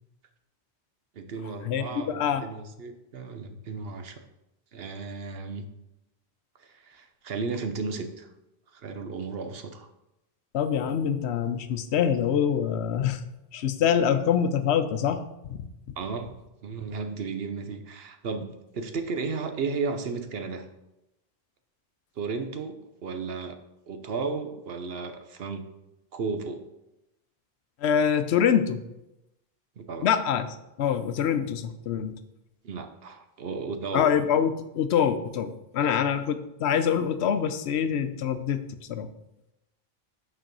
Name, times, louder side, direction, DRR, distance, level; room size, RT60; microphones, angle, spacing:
voice 1, 1.1-4.2 4.7-5.7 6.6-8.3 8.7-9.9 16.0-16.3 16.6-20.7 22.2-23.6 23.9-25.6 26.1-26.6 29.8-30.1 32.6-34.1 35.8-36.0, right 4 dB, 70° right, 7 dB, 1.0 m, -34 dB
voice 2, 1.7-2.4 10.5-13.2 13.5-15.2 15.5-15.7 27.8-28.8 30.0-30.5 30.8-32.1 33.9-38.6 38.9-39.1, left 8 dB, 85° left, 10 dB, 0.9 m, -25 dB
6.5 x 4.6 x 6.0 m, 0.90 s
omnidirectional pair, 1.1 m